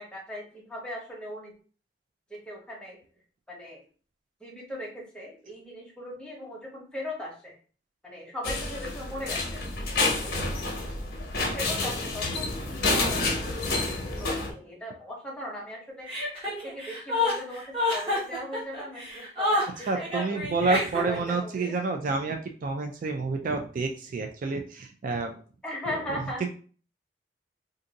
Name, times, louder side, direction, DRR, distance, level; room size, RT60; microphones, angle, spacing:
voice 1, 0.0-1.5 2.3-3.0 3.5-3.8 4.4-7.6 8.0-9.6 10.2-10.4 11.3-16.1 16.6-20.5 20.9-21.7 25.6-26.5, left 1 dB, 5° left, -3 dB, 1.0 m, -39 dB
sound 1, 8.4-14.5, left 2 dB, 60° left, 0.8 m, -29 dB
Chuckle chortle, 16.1-21.3, left 2 dB, 30° right, 1.3 m, -28 dB
voice 2, 19.9-25.4 25.9-26.5, right 3 dB, 50° right, 5 dB, 0.3 m, -29 dB
2.6 x 2.5 x 3.9 m, 0.41 s
head